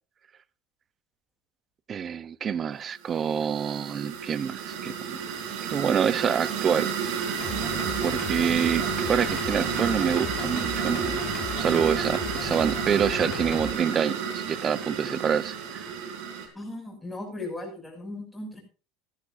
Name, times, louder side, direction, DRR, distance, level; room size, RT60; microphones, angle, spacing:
voice 1, 1.9-5.2 5.7-6.9 8.0-11.2 11.6-15.8, right 7 dB, 30° right, 0.8 m, -27 dB
sound 1, 3.1-16.5, right 7 dB, 70° right, 3.6 m, -31 dB
sound 2, 7.4-13.7, left 9 dB, 40° left, 1.6 m, -37 dB
voice 2, 16.5-18.6, left 2 dB, 5° left, 6.3 m, -37 dB
17.5 x 13.0 x 2.6 m
supercardioid pair, 120°, 0 cm